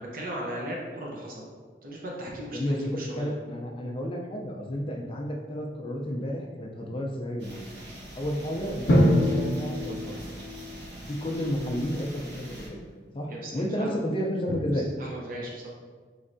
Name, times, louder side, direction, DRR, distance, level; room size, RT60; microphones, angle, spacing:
voice 1, 0.0-1.5 1.8-3.3 13.3-13.9 15.0-15.7, right 1 dB, 55° right, -3 dB, 0.7 m, -37 dB
voice 2, 2.5-7.6 8.1-10.2 11.0-12.8 13.1-14.9, equal, 30° left, 0 dB, 0.4 m, -31 dB
sound 1, 7.4-12.7, right 1 dB, 70° right, 1.1 m, -43 dB
Drum, 8.9-10.8, equal, 80° left, 0.6 m, -23 dB
4.4 x 3.1 x 2.5 m, 1.5 s
head